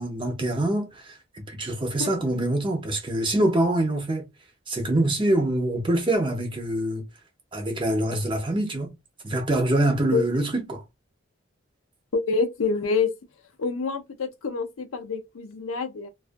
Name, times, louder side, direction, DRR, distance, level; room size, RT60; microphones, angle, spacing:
voice 1, 0.0-4.2 4.7-7.0 7.5-8.9 9.2-10.8, right 1 dB, 25° right, 0.6 m, -25 dB
voice 2, 12.1-13.1 13.6-16.1, left 4 dB, 80° left, 0.5 m, -26 dB
2.3 x 2.3 x 2.5 m
head